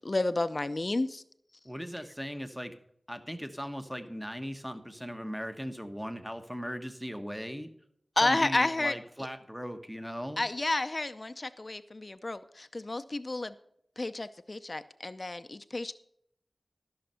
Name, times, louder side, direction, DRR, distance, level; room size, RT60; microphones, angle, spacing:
voice 1, 0.0-1.2 8.2-8.9 10.4-13.5 14.0-15.9, left 2 dB, 40° left, 11 dB, 0.5 m, -31 dB
voice 2, 1.6-2.8 3.1-7.7 8.2-10.4, equal, 5° right, 7 dB, 1.1 m, -38 dB
14.0 x 6.5 x 5.6 m, 0.70 s
wide cardioid pair, 60°, 0 cm